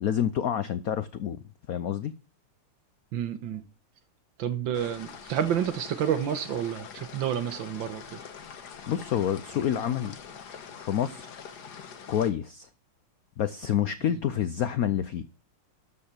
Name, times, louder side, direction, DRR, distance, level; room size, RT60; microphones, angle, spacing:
voice 1, 0.0-1.4 1.7-2.1 8.9-10.1 10.8-11.3 12.1-12.7 13.4-15.3, left 9 dB, 85° left, 0.8 m, -28 dB
voice 2, 3.1-3.6 4.4-8.2 14.1-14.2, right 9 dB, 65° right, 1.7 m, -29 dB
sound 1, 4.7-12.3, left 7 dB, 55° left, 1.6 m, -44 dB
13.0 x 5.6 x 5.9 m
omnidirectional pair, 2.3 m